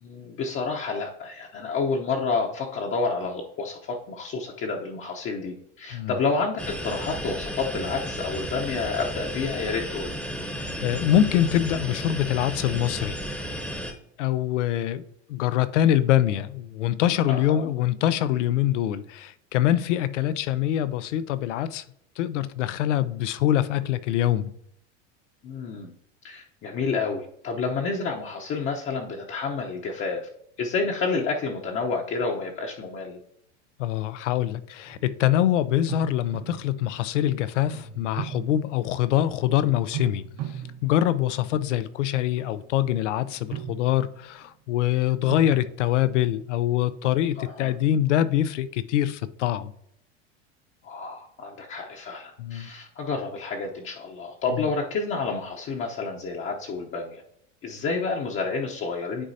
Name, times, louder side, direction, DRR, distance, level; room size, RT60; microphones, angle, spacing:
voice 1, 0.0-10.1 17.3-17.7 25.4-25.9 26.2-30.2 30.6-33.2 47.4-47.7 50.8-57.2 57.6-59.2, left 4 dB, 35° left, 0.9 m, -29 dB
sound 1, 6.6-13.9, equal, 5° left, 1.0 m, -33 dB
voice 2, 10.6-13.4 14.2-15.0 15.3-21.8 22.2-24.5 33.8-40.2 40.8-49.7 52.4-52.7, left 12 dB, 85° left, 0.6 m, -24 dB
sound 2, 34.8-35.3 35.9-37.1 37.7-39.1 39.5-41.8 42.4-42.7 43.3-44.4 45.3-45.6, right 9 dB, 55° right, 1.2 m, -37 dB
9.7 x 4.0 x 2.7 m
supercardioid pair, 115°, 35 cm